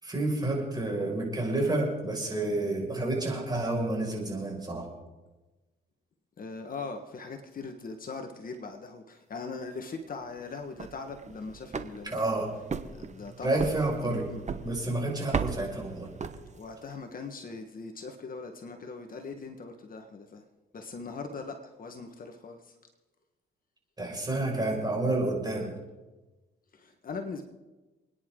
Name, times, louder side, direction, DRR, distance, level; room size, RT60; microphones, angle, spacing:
voice 1, 0.0-4.9 12.0-12.6 13.4-14.3 14.6-16.1 24.0-25.7, right 2 dB, 20° right, -1 dB, 5.9 m, -29 dB
voice 2, 6.4-12.4 12.9-13.6 14.0-14.4 16.5-20.4 20.7-22.7 26.7-27.4, left 4 dB, 45° left, 4 dB, 1.6 m, -40 dB
sound 1, 10.6-16.9, right 5 dB, 35° right, 1.2 m, -37 dB
29.0 x 10.0 x 3.9 m, 1.2 s
cardioid pair, 90°, 20 cm